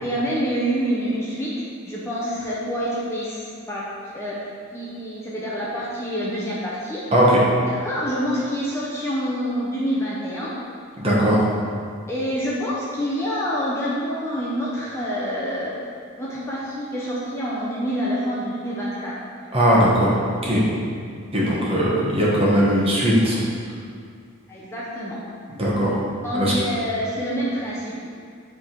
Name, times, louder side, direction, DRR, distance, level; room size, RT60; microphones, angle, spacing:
voice 1, 0.0-3.9 4.1-4.4 4.7-7.0 7.7-10.5 12.1-15.7 16.2-19.1 19.4-19.7 24.5-25.2 26.2-28.1, equal, 10° left, -7 dB, 0.7 m, -27 dB
voice 2, 11.0-11.4 19.5-20.2 20.4-20.7 21.3-23.4 25.6-25.9 26.3-26.5, equal, 25° right, -6 dB, 1.2 m, -19 dB
8.1 x 3.6 x 4.5 m, 2.2 s
head